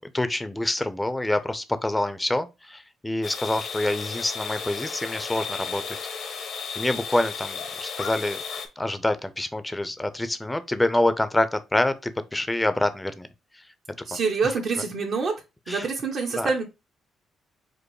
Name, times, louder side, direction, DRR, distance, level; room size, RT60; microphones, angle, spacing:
voice 1, 0.0-5.8 6.8-8.4 8.8-13.3 14.1-14.2 15.7-15.9 16.3-16.5, left 1 dB, 10° left, 0.6 m, -26 dB
sound 1, 3.2-8.7, left 6 dB, 70° left, 1.0 m, -34 dB
voice 2, 14.1-15.3 15.7-16.6, right 4 dB, 65° right, 1.1 m, -26 dB
5.1 x 2.1 x 4.7 m
cardioid pair, 90°, 0 cm